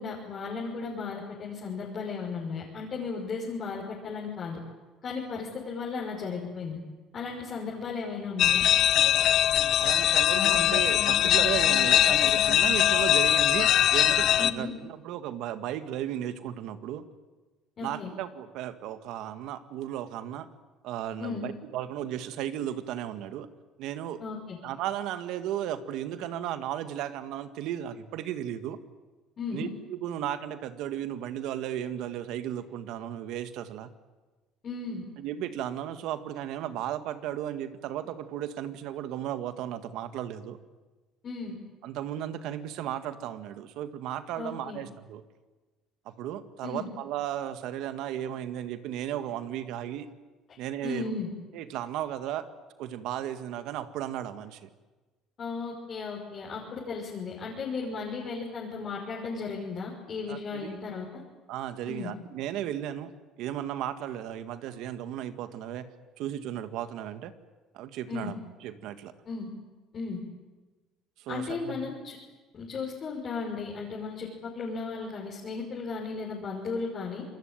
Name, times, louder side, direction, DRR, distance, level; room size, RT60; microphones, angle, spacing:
voice 1, 0.0-4.6 5.0-6.8 7.1-8.6 14.4-14.7 17.8-18.1 21.2-21.5 24.2-24.6 29.4-29.7 34.6-35.0 41.2-41.5 44.4-44.8 46.6-46.9 50.8-51.3 55.4-61.2 61.9-62.1 68.1-68.3 69.3-69.5 69.9-70.2 71.3-72.2 72.5-74.3 74.5-77.2, left 4 dB, 40° left, -3 dB, 5.7 m, -35 dB
sound 1, 8.4-14.5, left 11 dB, 60° left, 1.1 m, -22 dB
voice 2, 9.8-17.0 17.8-20.5 20.8-23.5 23.8-24.2 24.6-28.8 29.5-33.9 35.2-40.6 41.8-45.2 46.1-50.1 50.6-51.1 51.5-52.5 52.8-54.7 60.3-60.8 61.5-63.1 63.4-67.3 67.7-68.4 68.6-69.1 71.2-71.8, right 11 dB, 75° right, 10 dB, 1.9 m, -35 dB
27.0 x 21.5 x 9.1 m, 1.3 s
cardioid pair, 125°, 0 cm